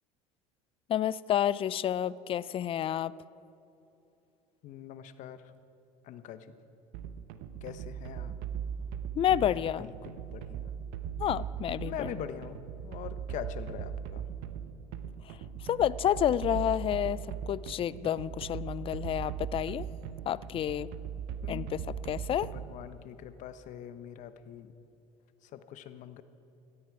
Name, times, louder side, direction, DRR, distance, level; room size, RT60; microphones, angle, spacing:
voice 1, 0.9-3.1 9.1-9.9 11.2-12.1 15.3-15.4 15.6-19.9 20.3-20.9 21.5-21.8 22.1-22.5, left 11 dB, 35° left, 20 dB, 0.4 m, -29 dB
voice 2, 4.6-5.5 6.0-6.5 7.6-8.3 9.4-10.7 11.8-14.3 21.4-21.9 22.5-24.7 25.4-26.2, left 9 dB, 55° left, 12 dB, 1.0 m, -43 dB
sound 1, 6.9-22.9, right 8 dB, 70° right, 0.9 m, -39 dB
17.5 x 13.5 x 4.8 m, 2.9 s
supercardioid pair, 90°, 15 cm